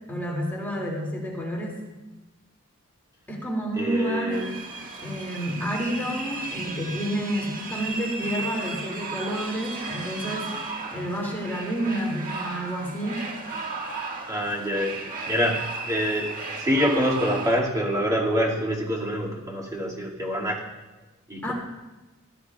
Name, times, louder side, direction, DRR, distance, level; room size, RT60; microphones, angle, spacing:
voice 1, 0.1-1.8 3.3-4.5 5.0-10.5 10.9-13.3 21.4-21.5, right 1 dB, 10° left, -3 dB, 2.4 m, -29 dB
voice 2, 3.8-4.4 14.3-20.6 21.3-21.5, equal, 15° right, -5 dB, 2.2 m, -26 dB
sound 1, 4.3-17.6, right 3 dB, 40° right, 1.7 m, -35 dB
19.5 x 13.0 x 2.4 m, 1.1 s
head